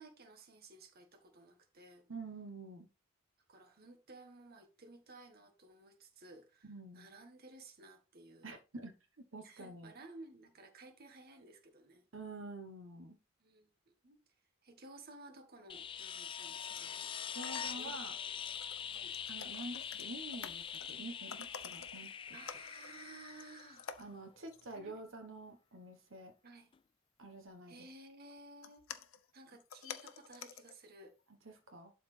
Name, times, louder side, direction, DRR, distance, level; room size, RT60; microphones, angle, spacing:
voice 1, 0.0-2.1 3.5-8.5 9.4-12.0 13.4-14.2 14.6-17.1 17.6-18.0 18.8-19.2 22.3-23.9 24.7-25.0 25.7-25.8 26.4-26.7 27.7-28.8 29.3-31.1, right 2 dB, 50° right, 1.4 m, -56 dB
voice 2, 2.1-2.9 6.6-7.1 8.4-9.9 12.1-13.2 17.3-18.1 19.3-22.3 24.0-26.3 27.2-27.9 31.4-31.9, right 2 dB, 75° right, 1.2 m, -48 dB
sound 1, 15.7-24.4 26.7-26.8, left 8 dB, 25° left, 0.3 m, -44 dB
sound 2, 16.3-17.0 17.2-18.0 18.4-21.0 21.3-22.1 22.5-23.0 23.3-24.2 24.5-24.8 27.6-27.8 28.3-30.8 31.2-31.3, left 7 dB, 90° left, 0.7 m, -50 dB
11.5 x 4.2 x 3.3 m
head